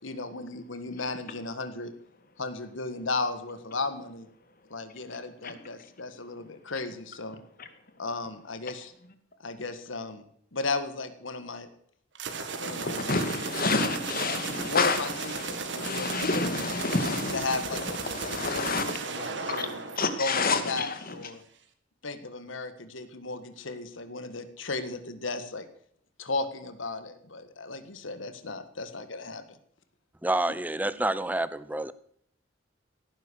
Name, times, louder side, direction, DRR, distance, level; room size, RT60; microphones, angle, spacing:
voice 1, 0.0-1.9 2.4-4.3 4.7-7.4 8.0-8.9 9.4-10.3 10.5-11.7 12.6-13.2 14.7-16.5 17.3-19.8 20.2-21.4 22.0-25.7 26.2-29.6, left 3 dB, 90° left, 10 dB, 1.7 m, -35 dB
sound 1, 12.1-20.8, right 4 dB, 65° right, 2.0 m, -36 dB
voice 2, 12.7-19.0 19.5-19.7 20.0-21.3, left 3 dB, 50° left, 9 dB, 2.2 m, -29 dB
voice 3, 30.2-31.9, right 1 dB, 10° right, 15 dB, 0.7 m, -28 dB
17.0 x 10.5 x 6.4 m, 0.65 s
head